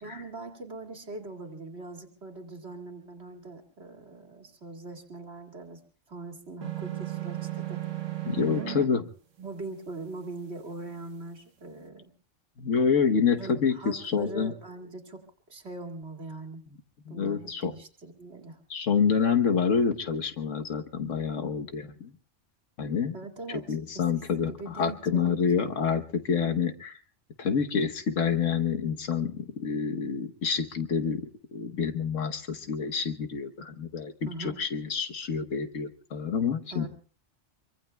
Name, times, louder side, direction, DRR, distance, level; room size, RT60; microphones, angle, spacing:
voice 1, 0.0-5.8 6.1-7.8 8.5-8.8 9.4-12.1 13.4-15.2 15.5-16.6 17.1-18.6 23.1-24.1 24.4-25.6 34.2-34.6 36.7-36.9, right 3 dB, 60° right, 3 dB, 2.5 m, -41 dB
sound 1, 6.6-8.9, right 15 dB, 80° right, 1.3 m, -34 dB
voice 2, 8.2-9.0 12.6-14.5 17.0-17.7 18.7-22.1 22.8-23.1 23.5-27.0 27.4-36.9, left 6 dB, 85° left, 6 dB, 1.5 m, -28 dB
25.0 x 24.0 x 2.3 m, 0.40 s
omnidirectional pair, 1.3 m